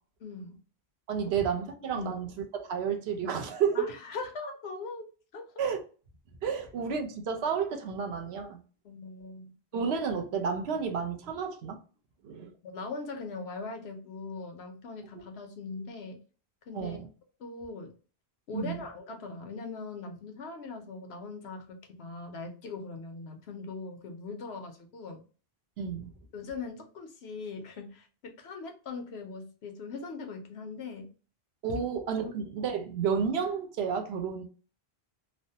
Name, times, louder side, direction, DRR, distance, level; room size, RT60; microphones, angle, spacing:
voice 1, 0.2-0.6 2.0-2.1 3.7-5.1 5.3-5.5 8.8-9.5 12.6-16.2 16.7-17.0 17.4-17.9 18.5-25.2 26.3-31.1 31.7-31.8 32.2-32.3, left 3 dB, 80° left, 1.0 m, -40 dB
voice 2, 1.1-2.3 2.5-3.9 5.6-5.8 6.4-8.6 9.7-11.8 12.2-12.5 16.7-17.1 18.5-18.8 25.8-26.1 31.6-34.4, right 6 dB, 80° right, 0.9 m, -31 dB
3.2 x 2.0 x 2.7 m
omnidirectional pair, 1.1 m